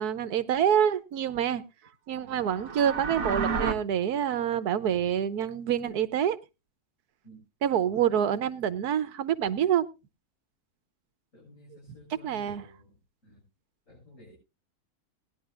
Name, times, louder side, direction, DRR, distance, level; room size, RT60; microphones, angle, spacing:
voice 1, 0.0-1.6 2.1-6.4 7.6-9.9 12.2-12.6, right 9 dB, 85° right, 1.4 m, -26 dB
voice 2, 2.2-2.6 7.2-7.4 11.3-13.0 13.2-13.4 13.9-14.3, equal, 55° left, 7.3 m, -53 dB
sound 1, 2.3-3.7, right 5 dB, 65° right, 1.6 m, -30 dB
19.0 x 11.0 x 2.4 m
omnidirectional pair, 1.6 m